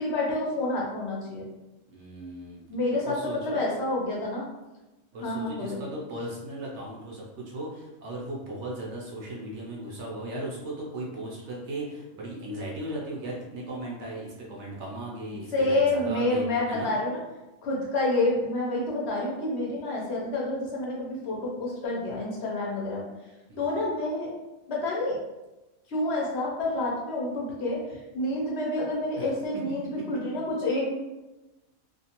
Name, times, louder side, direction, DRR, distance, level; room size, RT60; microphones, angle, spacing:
voice 1, 0.0-1.5 2.7-4.5 5.2-5.8 15.5-17.2 17.6-23.0 23.6-24.3 24.7-25.2 25.9-30.9, left 2 dB, 60° left, -3 dB, 0.8 m, -28 dB
voice 2, 1.9-2.6 3.0-3.6 5.1-16.9 23.5-23.8 29.2-29.3, right 1 dB, 65° right, -3 dB, 0.9 m, -37 dB
2.5 x 2.3 x 2.8 m, 1.0 s
omnidirectional pair, 1.4 m